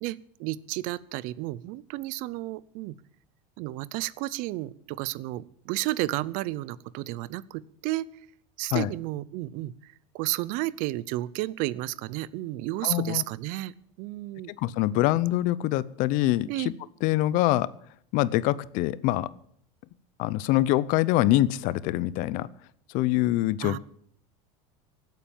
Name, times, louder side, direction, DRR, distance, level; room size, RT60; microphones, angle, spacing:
voice 1, 0.0-2.9 3.6-8.1 8.6-14.5 16.5-16.7 23.6-23.8, right 18 dB, 60° right, 21 dB, 0.6 m, -32 dB
voice 2, 12.8-13.2 14.5-16.7 17.0-17.7 18.1-19.3 20.2-22.5 22.9-23.8, left 15 dB, 55° left, 20 dB, 0.7 m, -24 dB
16.5 x 9.3 x 7.3 m, 0.66 s
supercardioid pair, 130°, 16 cm